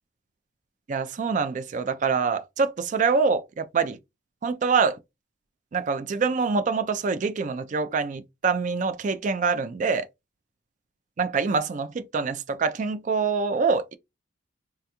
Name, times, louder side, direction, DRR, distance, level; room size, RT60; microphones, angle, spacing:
voice 1, 0.9-4.0 4.4-5.0 5.7-10.1 11.2-14.0, right 5 dB, 40° right, 0.3 m, -25 dB
3.4 x 2.3 x 2.8 m
head